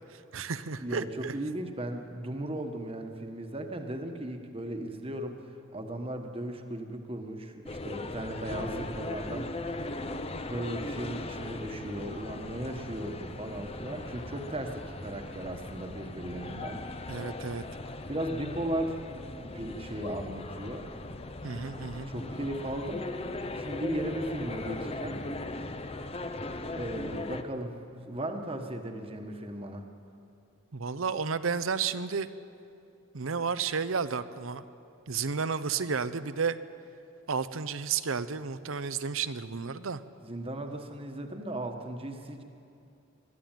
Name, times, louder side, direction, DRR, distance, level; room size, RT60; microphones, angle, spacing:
voice 1, 0.1-1.3 17.1-17.6 21.4-22.1 30.7-32.3 33.1-34.6 35.1-36.6 37.3-40.0, right 5 dB, 75° right, 13 dB, 0.8 m, -32 dB
voice 2, 0.8-5.4 5.7-9.5 10.4-16.8 18.1-19.0 19.4-20.9 21.7-23.1 23.5-25.2 26.7-29.8 40.2-42.4, right 1 dB, 25° right, 5 dB, 1.4 m, -36 dB
sound 1, 7.7-27.4, left 2 dB, 30° left, 0.8 m, -38 dB
22.0 x 13.0 x 9.1 m, 2.6 s
head